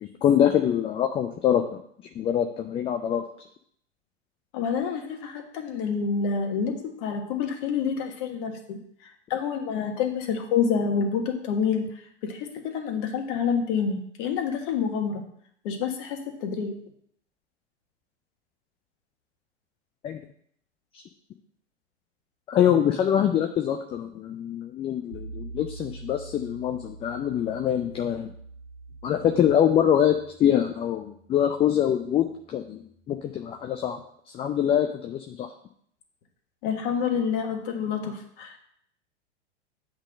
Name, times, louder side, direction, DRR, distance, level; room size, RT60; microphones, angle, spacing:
voice 1, 0.0-1.6 2.2-3.2 20.0-20.2 22.5-28.3 29.0-34.0 34.3-35.5, left 9 dB, 15° left, 5 dB, 0.4 m, -24 dB
voice 2, 4.5-8.8 9.3-11.9 12.2-15.2 15.6-16.7 36.6-38.6, left 6 dB, 45° left, 4 dB, 1.6 m, -28 dB
sound 1, 25.1-33.8, right 3 dB, 90° right, 1.3 m, -46 dB
8.0 x 3.9 x 6.3 m, 0.66 s
figure-of-eight pair, 95°, 35 cm